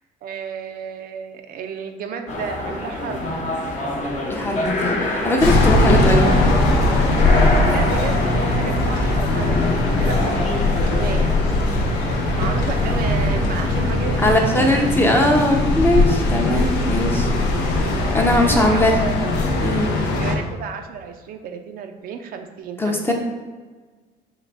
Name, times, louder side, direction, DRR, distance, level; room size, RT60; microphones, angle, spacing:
voice 1, 0.2-3.5 7.7-11.6 12.4-14.9 15.2-15.4 17.5-17.9 18.4-19.3 20.2-23.1, right 7 dB, 60° right, 6 dB, 0.4 m, -32 dB
sound 1, 2.3-14.5, left 1 dB, 45° left, 0.9 m, -26 dB
voice 2, 4.3-6.3 14.2-17.3 18.1-19.0 19.6-20.0 22.8-23.1, left 1 dB, 15° left, 1 dB, 0.6 m, -20 dB
sound 2, 5.4-20.4, left 2 dB, 85° left, 0.6 m, -20 dB
Alarm, 6.7-16.0, right 3 dB, 80° right, 0.8 m, -40 dB
3.8 x 3.1 x 3.4 m, 1.4 s
cardioid pair, 110°, 17 cm